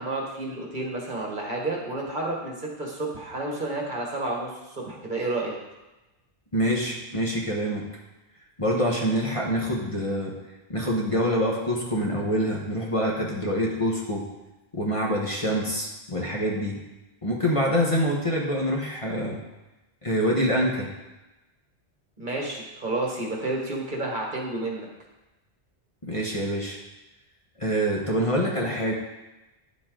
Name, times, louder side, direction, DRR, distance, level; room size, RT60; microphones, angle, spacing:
voice 1, 0.0-5.6 22.2-24.9, right 2 dB, 45° right, -1 dB, 1.7 m, -30 dB
voice 2, 6.5-7.8 8.6-10.3 10.7-14.2 14.7-16.8 17.2-19.4 20.0-20.9 26.0-26.8 27.6-28.9, equal, 30° left, -2 dB, 1.3 m, -25 dB
9.5 x 7.7 x 3.8 m, 1.0 s
omnidirectional pair, 1.1 m